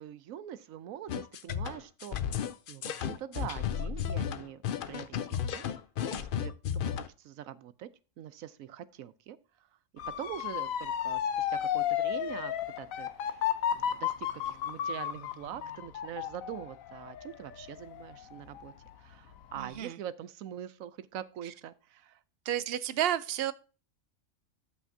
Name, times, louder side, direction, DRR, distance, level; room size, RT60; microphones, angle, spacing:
voice 1, 0.0-4.6 4.9-5.6 6.1-7.9 8.2-9.4 10.2-18.7 19.0-22.2, right 10 dB, 90° right, 1.1 m, -44 dB
sound 1, 1.1-7.1, left 9 dB, 60° left, 0.6 m, -33 dB
Motor vehicle (road) / Siren, 10.0-18.9 19.3-19.8, left 10 dB, 80° left, 1.1 m, -33 dB
voice 2, 19.6-20.0 22.5-23.5, right 11 dB, 60° right, 0.7 m, -31 dB
12.5 x 5.8 x 2.7 m
omnidirectional pair, 1.4 m